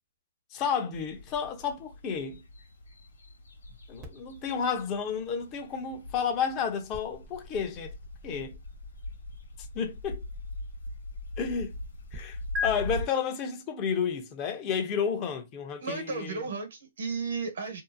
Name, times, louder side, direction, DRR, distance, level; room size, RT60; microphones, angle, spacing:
voice 1, 0.5-2.4 3.9-7.9 8.2-8.6 9.7-10.2 11.4-11.7 12.1-16.5, left 6 dB, 30° left, 0.6 m, -31 dB
sound 1, 0.9-13.1, left 2 dB, 85° left, 0.9 m, -42 dB
sound 2, 4.0-12.2 12.6-12.7, left 5 dB, 30° right, 0.7 m, -42 dB
voice 2, 15.8-17.8, right 4 dB, 75° right, 1.1 m, -34 dB
2.7 x 2.0 x 2.5 m
hypercardioid pair, 135°, 0 cm